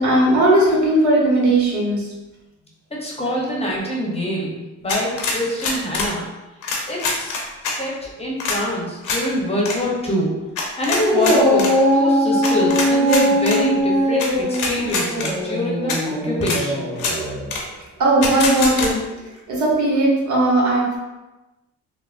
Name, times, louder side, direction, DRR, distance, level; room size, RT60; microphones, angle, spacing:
voice 1, 0.0-2.1 18.0-19.0 19.5-21.0, right 1 dB, 75° right, -4 dB, 1.0 m, -17 dB
voice 2, 3.0-6.2 6.9-10.3 10.8-16.9, equal, 20° left, -3 dB, 0.7 m, -25 dB
sound 1, 4.9-6.1 6.6-7.8 8.4-8.6 9.0-9.2 9.6-9.8 10.6-11.7 12.4-13.6 14.2-14.3 14.5-15.3 15.9-16.0 16.4-16.6 17.0-17.2 17.5-17.6 18.2-18.9, left 4 dB, 80° left, 0.6 m, -24 dB
Dog, 10.9-17.5, equal, 55° right, 1.5 m, -20 dB
3.4 x 2.0 x 2.5 m, 1.1 s
cardioid pair, 90°, 30 cm